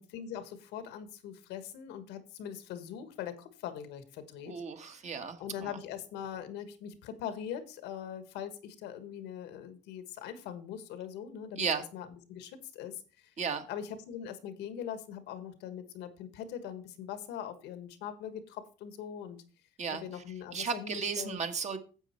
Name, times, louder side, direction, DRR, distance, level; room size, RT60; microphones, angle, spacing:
voice 1, 0.0-4.5 5.4-11.7 11.9-13.3 13.7-19.4 19.9-21.4, left 9 dB, 90° left, 11 dB, 1.4 m, -42 dB
voice 2, 4.4-5.8 11.6-11.8 13.4-13.6 19.8-20.2 20.5-21.8, right 5 dB, 40° right, 7 dB, 1.6 m, -34 dB
10.0 x 7.6 x 4.5 m, 0.36 s
cardioid pair, 110°, 17 cm